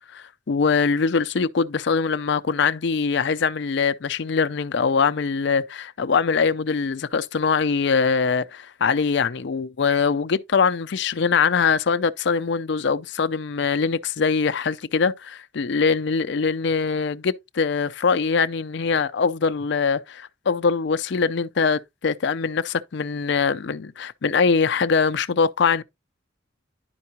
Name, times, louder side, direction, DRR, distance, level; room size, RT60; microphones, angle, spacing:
voice 1, 0.1-25.8, left 5 dB, 60° left, 0.5 m, -22 dB
10.5 x 4.6 x 2.8 m
head